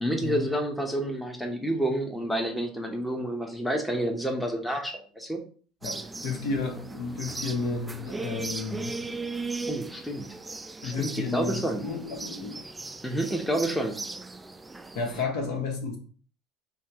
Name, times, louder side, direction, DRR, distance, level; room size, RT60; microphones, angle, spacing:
voice 1, 0.0-5.4 9.7-10.3 10.8-11.8 13.0-14.0, right 1 dB, 5° left, 0.8 m, -29 dB
voice 2, 5.8-9.0 10.8-12.6 14.9-16.0, left 4 dB, 65° left, 1.2 m, -32 dB
sound 1, 5.8-15.2, right 3 dB, 15° right, 0.3 m, -38 dB
5.6 x 2.3 x 2.9 m
hypercardioid pair, 75°, 0 cm